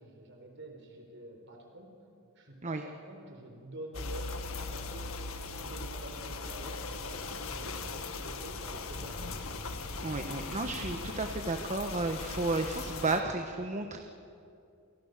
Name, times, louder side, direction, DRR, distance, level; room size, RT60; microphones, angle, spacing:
voice 1, 0.0-1.9 2.3-5.1 5.6-9.5, right 1 dB, 55° right, 2 dB, 4.3 m, -48 dB
sound 1, 3.9-13.2, left 3 dB, 70° left, 1.8 m, -39 dB
voice 2, 10.0-14.0, right 2 dB, 35° right, 5 dB, 1.2 m, -32 dB
29.5 x 29.0 x 6.7 m, 2.6 s
head